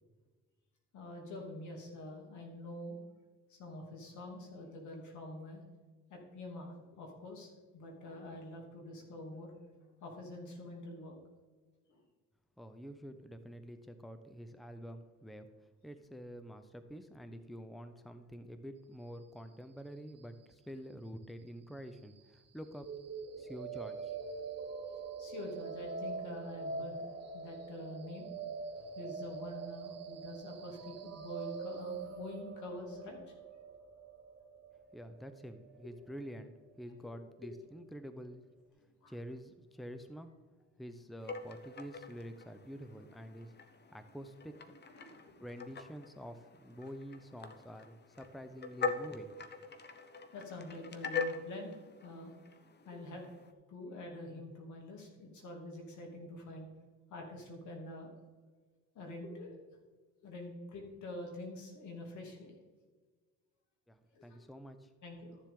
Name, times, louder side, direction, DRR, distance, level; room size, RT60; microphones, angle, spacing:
voice 1, 0.9-3.0 3.5-5.6 6.1-9.7 10.0-11.2 11.9-12.0 25.2-27.1 27.3-28.3 28.7-33.3 37.4-37.5 38.8-39.1 44.7-45.4 50.3-52.4 52.8-53.2 53.7-56.7 57.1-58.1 58.9-59.6 60.2-62.6 64.1-64.4 65.0-65.4, left 1 dB, 75° left, 1 dB, 2.8 m, -46 dB
voice 2, 12.6-15.5 15.8-22.9 23.4-24.1 34.9-38.5 39.1-40.3 40.8-43.5 43.9-44.6 45.4-49.4 63.9-64.9, equal, ahead, 9 dB, 0.7 m, -48 dB
sound 1, 22.8-36.8, right 4 dB, 55° right, 1.2 m, -44 dB
sound 2, 41.2-53.5, left 4 dB, 35° left, 0.9 m, -43 dB
13.5 x 7.2 x 3.8 m, 1.4 s
cardioid pair, 90°, 30 cm